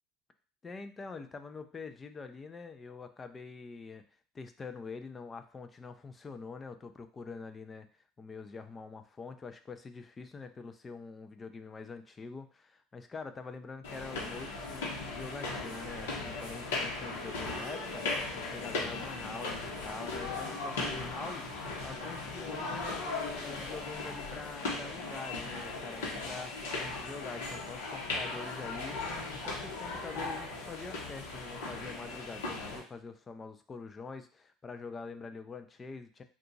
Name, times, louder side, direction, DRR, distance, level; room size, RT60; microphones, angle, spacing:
voice 1, 0.6-4.0 4.3-7.9 8.2-36.2, left 4 dB, 25° left, 8 dB, 0.4 m, -45 dB
sound 1, 13.8-32.8, left 3 dB, 85° left, 0.9 m, -38 dB
2.8 x 2.4 x 3.8 m, 0.40 s
hypercardioid pair, 80°, 0 cm